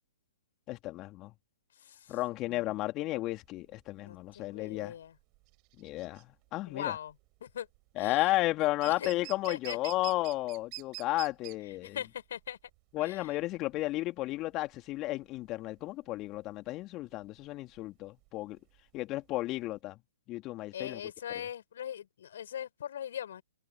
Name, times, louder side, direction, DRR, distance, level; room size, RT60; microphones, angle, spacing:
voice 1, 0.7-1.3 2.1-4.9 5.8-6.3 6.5-6.9 8.0-12.0 12.9-18.6 18.9-20.0 20.3-21.0, left 17 dB, 30° left, 2.8 m, -33 dB
voice 2, 1.8-2.2 2.5-2.8 4.0-5.2 6.7-7.2 7.4-7.7 8.0-8.4 8.9-9.1 9.5-9.8 11.7-12.6 13.0-13.3 20.7-23.4, left 9 dB, 60° left, 5.9 m, -41 dB
sound 1, 3.4-19.8, right 27 dB, 30° right, 5.6 m, -49 dB
figure-of-eight pair, 125°, 0 cm